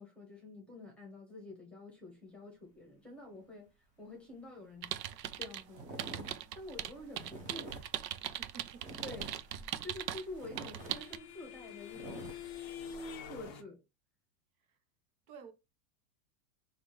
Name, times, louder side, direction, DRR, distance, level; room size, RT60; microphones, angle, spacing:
voice 1, 0.0-3.7 4.0-4.9 5.4-7.8 9.0-9.3 9.8-12.3 13.2-13.8, left 2 dB, ahead, 1.0 m, -48 dB
sound 1, 4.7-4.8 5.0-5.3 5.7-13.5, right 2 dB, 15° right, 0.6 m, -49 dB
sound 2, 4.8-5.6 6.0-10.2 10.6-11.2, right 11 dB, 85° right, 0.7 m, -39 dB
voice 2, 8.2-8.9 14.7-14.8 15.3-15.5, right 6 dB, 60° right, 1.1 m, -52 dB
sound 3, 9.9-13.6, left 6 dB, 30° left, 0.4 m, -47 dB
5.5 x 2.5 x 3.2 m
supercardioid pair, 165°, 48 cm